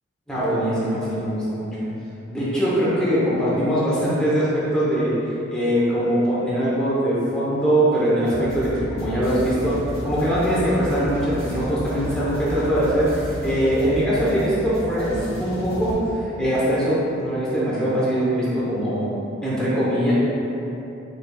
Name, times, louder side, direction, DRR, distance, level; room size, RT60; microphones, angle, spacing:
voice 1, 0.3-1.7 2.3-5.2 5.5-19.1 19.4-20.1, equal, 5° left, -10 dB, 0.7 m, -22 dB
sound 1, 8.3-15.9, equal, 30° right, 1.5 m, -33 dB
4.9 x 3.3 x 2.2 m, 3.0 s
head